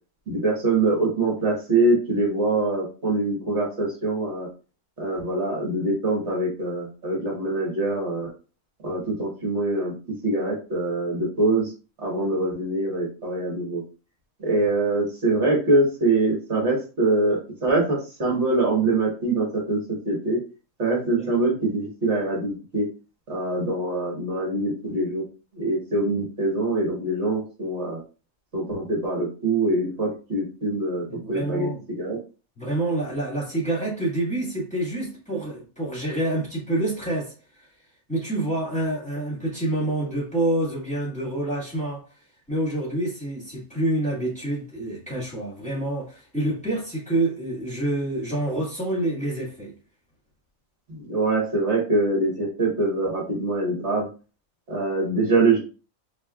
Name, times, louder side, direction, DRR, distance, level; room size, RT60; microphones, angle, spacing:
voice 1, 0.3-4.5 5.0-8.3 8.8-9.9 10.2-11.7 12.0-13.8 14.4-20.4 20.8-22.8 23.3-25.2 25.5-28.0 28.5-31.7 32.0-32.2 50.9-54.1 54.7-55.6, right 2 dB, 55° right, 1.5 m, -24 dB
voice 2, 31.1-31.8 32.6-37.7 38.1-42.0 42.5-49.7, right 1 dB, 5° left, 1.7 m, -27 dB
4.3 x 2.8 x 2.3 m
omnidirectional pair, 1.4 m